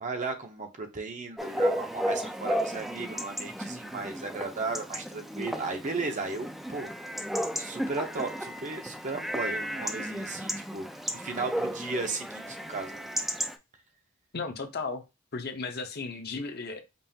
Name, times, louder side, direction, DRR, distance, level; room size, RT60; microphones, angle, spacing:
voice 1, 0.0-6.9 7.6-13.0, right 3 dB, 35° right, 0.7 m, -35 dB
Chatter / Bark / Livestock farm animals working animals, 1.4-13.6, equal, ahead, 0.4 m, -34 dB
voice 2, 14.3-15.0 15.3-16.8, left 4 dB, 50° left, 0.7 m, -35 dB
5.3 x 2.4 x 2.8 m
head